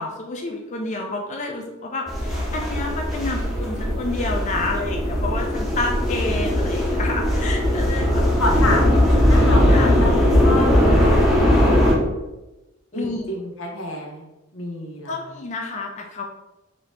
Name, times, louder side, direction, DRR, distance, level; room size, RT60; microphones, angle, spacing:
voice 1, 0.0-8.3 9.7-9.9 12.9-13.4 15.1-16.2, left 2 dB, 35° left, 1 dB, 0.4 m, -29 dB
sound 1, 2.1-12.0, left 1 dB, ahead, 0.7 m, -19 dB
voice 2, 7.5-8.0 8.4-12.2 12.9-14.3 14.5-15.1, left 1 dB, 90° left, -1 dB, 1.1 m, -29 dB
4.0 x 2.8 x 3.3 m, 0.99 s
head